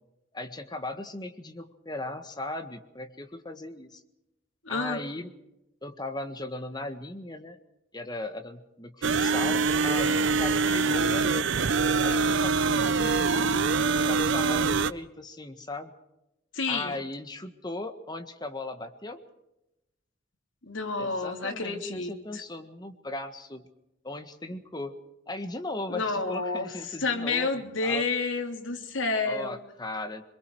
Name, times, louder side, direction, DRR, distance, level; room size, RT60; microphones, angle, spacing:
voice 1, 0.3-4.0 4.7-5.3 5.8-7.6 7.9-11.5 12.0-13.2 13.9-15.9 16.7-19.2 21.0-23.6 24.0-25.0 25.3-28.0 29.2-30.2, left 2 dB, 20° left, 7 dB, 1.6 m, -37 dB
voice 2, 4.6-5.0 16.5-16.9 20.7-22.4 25.9-26.7 27.0-29.6, left 3 dB, 80° left, 4 dB, 3.0 m, -29 dB
sound 1, 9.0-14.9, right 4 dB, 70° right, 0.7 m, -24 dB
25.5 x 22.5 x 4.7 m, 0.89 s
head